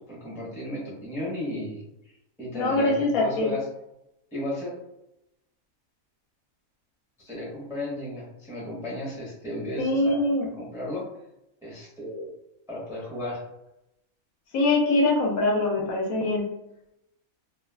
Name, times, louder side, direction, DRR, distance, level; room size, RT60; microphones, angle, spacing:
voice 1, 0.1-1.8 2.4-3.6 4.3-4.7 7.2-10.2 10.6-11.0 11.6-12.3 12.7-13.4, left 1 dB, 5° right, -6 dB, 0.6 m, -34 dB
voice 2, 2.5-3.5 9.8-10.5 14.5-16.4, left 2 dB, 75° left, -1 dB, 1.1 m, -23 dB
2.9 x 2.3 x 2.2 m, 0.85 s
omnidirectional pair, 1.5 m